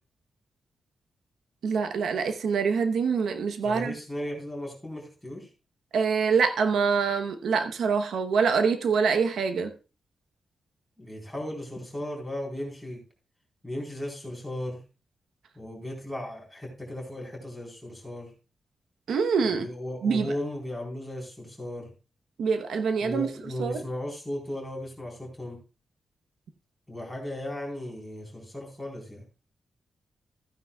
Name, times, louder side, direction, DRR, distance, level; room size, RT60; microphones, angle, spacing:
voice 1, 1.6-3.9 5.9-9.7 19.1-19.7 20.0-20.3 22.4-23.3 23.6-23.8, right 5 dB, 85° right, 7 dB, 0.9 m, -25 dB
voice 2, 3.6-5.5 11.0-13.0 13.6-14.8 15.6-18.3 19.4-21.9 23.0-25.6 26.9-29.2, left 1 dB, ahead, -2 dB, 4.0 m, -36 dB
15.0 x 9.4 x 2.3 m, 0.33 s
wide cardioid pair, 165°, 0 cm